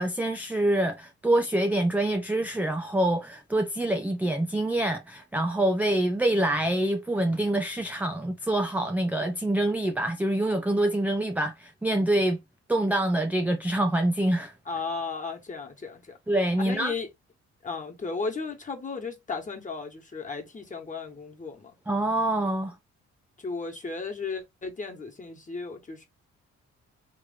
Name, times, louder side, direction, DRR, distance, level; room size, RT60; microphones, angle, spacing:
voice 1, 0.0-12.4 12.7-14.5 16.3-16.9 21.9-22.8, right 1 dB, 5° right, 0.4 m, -26 dB
voice 2, 14.7-16.2 16.6-17.1 17.6-21.7 23.4-26.1, left 4 dB, 25° left, 1.5 m, -35 dB
3.3 x 3.0 x 3.6 m
cardioid pair, 90°, 30 cm